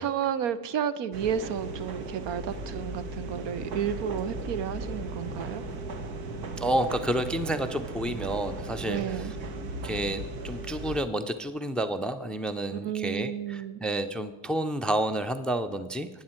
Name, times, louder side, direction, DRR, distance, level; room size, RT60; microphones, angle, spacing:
voice 1, 0.0-5.6 8.9-9.4 12.7-13.8, right 8 dB, 70° right, 15 dB, 0.8 m, -32 dB
sound 1, 1.1-11.0, right 2 dB, 90° right, 1.2 m, -37 dB
voice 2, 6.6-9.3 9.8-16.1, right 1 dB, ahead, 12 dB, 0.4 m, -30 dB
12.0 x 9.6 x 4.4 m, 1.2 s
cardioid pair, 100°, 45 cm